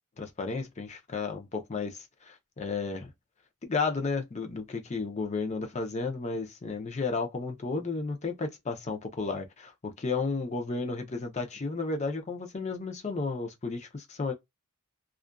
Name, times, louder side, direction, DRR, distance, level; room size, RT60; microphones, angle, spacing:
voice 1, 0.2-3.1 3.6-14.3, left 4 dB, 30° left, 0.5 m, -33 dB
2.4 x 2.4 x 2.2 m
head